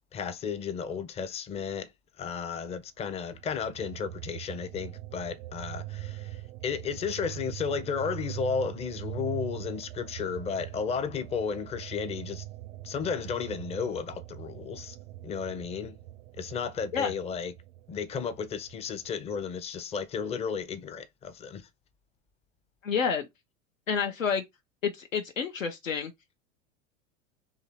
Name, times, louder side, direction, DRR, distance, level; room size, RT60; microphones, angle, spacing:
voice 1, 0.1-1.9 2.2-12.4 12.8-15.0 15.2-16.0 16.4-17.5 17.9-21.7, left 6 dB, 15° left, 0.4 m, -33 dB
sound 1, 3.2-19.4, right 16 dB, 70° right, 0.5 m, -42 dB
voice 2, 22.8-23.3 23.9-24.4 24.8-26.1, left 6 dB, 85° left, 0.7 m, -29 dB
2.9 x 2.7 x 4.4 m
hypercardioid pair, 90°, 38 cm